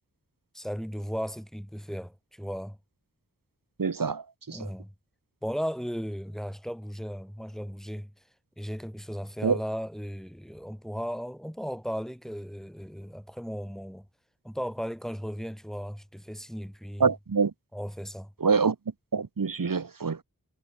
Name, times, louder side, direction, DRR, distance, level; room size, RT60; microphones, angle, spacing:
voice 1, 0.5-2.8 4.5-4.9 5.4-8.1 8.6-14.1 14.4-17.1 17.7-18.3, equal, ahead, 3.3 m, -36 dB
voice 2, 3.8-4.2 4.5-4.7 9.4-9.6 17.0-17.5 18.4-18.7 19.1-20.2, right 5 dB, 85° right, 1.2 m, -25 dB
wide cardioid pair, 50°, 33 cm